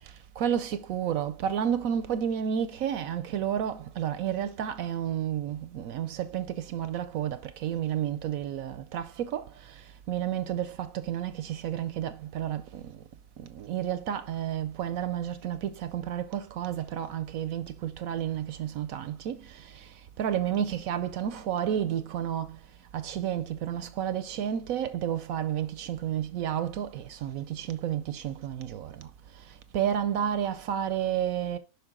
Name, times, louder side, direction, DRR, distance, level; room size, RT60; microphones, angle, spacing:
voice 1, 0.4-12.9 13.4-19.9 20.2-22.6 22.9-29.1 29.7-31.6, right 9 dB, 70° right, 0.9 m, -31 dB
6.9 x 5.6 x 3.6 m
omnidirectional pair, 1.7 m